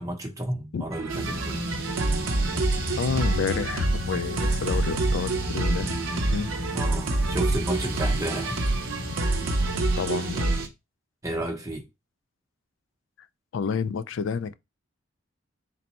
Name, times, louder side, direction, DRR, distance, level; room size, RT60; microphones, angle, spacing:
voice 1, 0.0-1.6 6.7-8.6 11.2-11.8, right 1 dB, 15° right, 0.8 m, -32 dB
sound 1, 0.9-10.6, right 2 dB, 75° right, 0.6 m, -27 dB
sound 2, 1.1-10.7, equal, 45° right, 1.0 m, -33 dB
voice 2, 3.0-5.9 6.3-6.5 10.0-10.6 13.5-14.5, left 6 dB, 65° left, 0.3 m, -29 dB
3.9 x 2.2 x 4.1 m
head